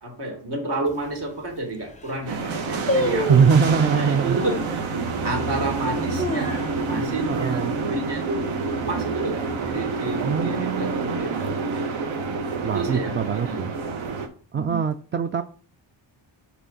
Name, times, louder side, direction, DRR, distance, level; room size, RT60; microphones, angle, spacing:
voice 1, 0.0-3.4 3.7-8.5 8.9-11.8 12.6-13.9 14.5-14.8, right 2 dB, 55° right, 1 dB, 2.4 m, -31 dB
sound 1, 0.9-1.0 1.6-1.7 1.9-2.3 2.9-3.6 4.4-4.8 5.3-5.4 5.9-7.1 7.4-7.5 7.8-8.2 8.6-8.9 9.5-10.3 10.6-10.7, equal, 15° left, 0.6 m, -28 dB
sound 2, 2.3-14.3, right 4 dB, 70° right, 1.1 m, -28 dB
voice 2, 3.3-4.4 7.3-7.8 10.2-11.2 12.6-13.7 14.5-15.4, right 6 dB, 25° right, 9 dB, 0.3 m, -22 dB
6.1 x 4.5 x 4.0 m, 0.43 s
cardioid pair, 75°, 49 cm